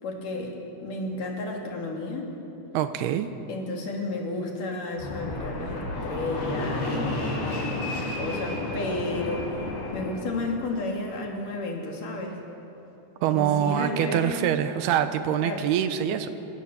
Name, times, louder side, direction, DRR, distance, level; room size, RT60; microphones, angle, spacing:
voice 1, 0.0-2.3 3.5-12.4 13.3-14.4 15.4-15.7, left 2 dB, 60° left, 0 dB, 4.0 m, -32 dB
voice 2, 2.7-3.3 13.2-16.3, right 10 dB, 90° right, 9 dB, 3.0 m, -25 dB
Fixed-wing aircraft airplane, 5.0-10.6, left 2 dB, 80° left, 7.6 m, -31 dB
27.5 x 17.5 x 7.0 m, 3.0 s
omnidirectional pair, 4.5 m